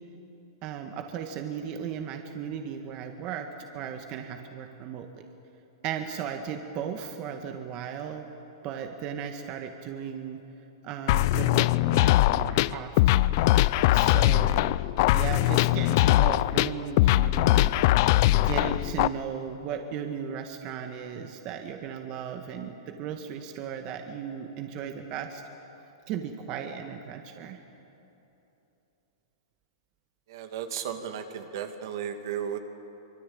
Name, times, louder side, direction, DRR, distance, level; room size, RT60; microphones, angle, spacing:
voice 1, 0.6-3.5 3.7-5.1 5.8-8.3 8.6-10.4 10.8-13.4 13.9-14.8 15.1-17.7 18.3-25.4 26.1-27.6, right 8 dB, 40° right, 5 dB, 1.8 m, -36 dB
sound 1, 11.1-19.1, left 16 dB, 50° left, 0.5 m, -21 dB
voice 2, 30.3-32.6, right 8 dB, 60° right, 6 dB, 2.3 m, -34 dB
25.0 x 23.5 x 8.8 m, 3.0 s
hypercardioid pair, 135°, 2 cm